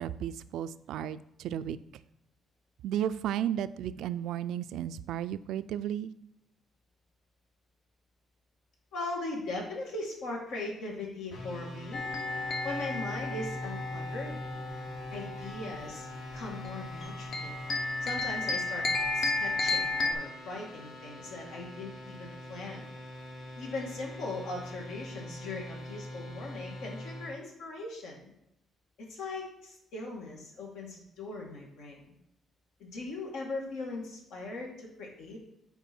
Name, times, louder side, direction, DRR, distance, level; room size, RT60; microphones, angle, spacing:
voice 1, 0.0-1.8 2.8-6.1, right 10 dB, 80° right, 14 dB, 0.3 m, -33 dB
voice 2, 8.9-12.0 12.6-14.4 15.1-16.1 16.3-17.5 18.0-18.9 19.1-22.9 23.6-28.3 29.0-32.1 32.8-35.4, left 2 dB, 80° left, -1 dB, 2.2 m, -39 dB
sound 1, 11.3-27.3, left 1 dB, 65° left, 1.6 m, -43 dB
sound 2, 11.9-20.1, left 3 dB, 50° left, 0.9 m, -34 dB
8.2 x 4.7 x 4.4 m, 0.79 s
cardioid pair, 120°, 0 cm